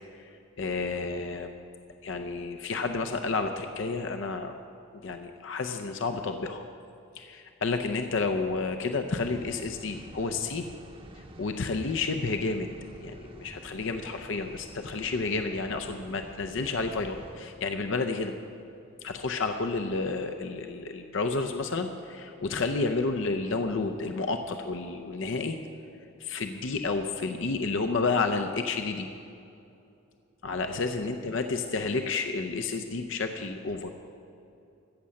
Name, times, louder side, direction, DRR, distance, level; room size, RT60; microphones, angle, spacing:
voice 1, 0.6-1.6 2.0-4.5 5.0-6.6 7.2-10.7 11.4-12.7 13.0-18.3 19.0-25.6 26.2-29.1 30.4-33.9, left 3 dB, 65° left, 6 dB, 0.6 m, -30 dB
sound 1, 9.1-17.4, right 1 dB, 25° right, 0.8 m, -48 dB
14.5 x 8.4 x 6.4 m, 2.6 s
head